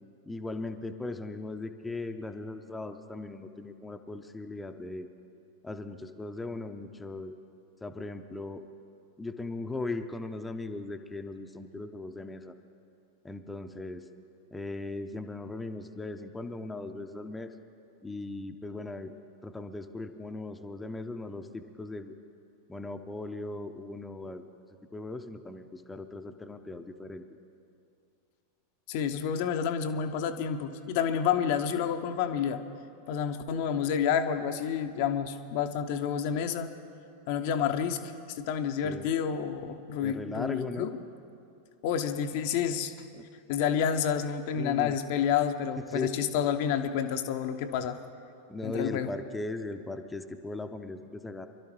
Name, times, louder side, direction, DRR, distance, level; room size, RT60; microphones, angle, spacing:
voice 1, 0.3-5.1 5.6-7.4 7.8-8.7 9.2-12.5 13.2-14.1 14.5-17.5 18.0-19.2 19.4-22.2 22.7-24.4 24.9-27.2 38.8-39.1 40.0-40.9 43.2-43.3 44.6-45.0 45.9-46.2 48.5-51.5, left 2 dB, 10° left, 6 dB, 0.7 m, -38 dB
voice 2, 28.9-32.6 33.1-36.7 37.3-38.0 38.3-40.9 41.8-42.9 43.5-48.0 48.6-49.1, left 8 dB, 50° left, 7 dB, 0.7 m, -29 dB
25.0 x 12.0 x 3.1 m, 2.5 s
figure-of-eight pair, 90°, 0 cm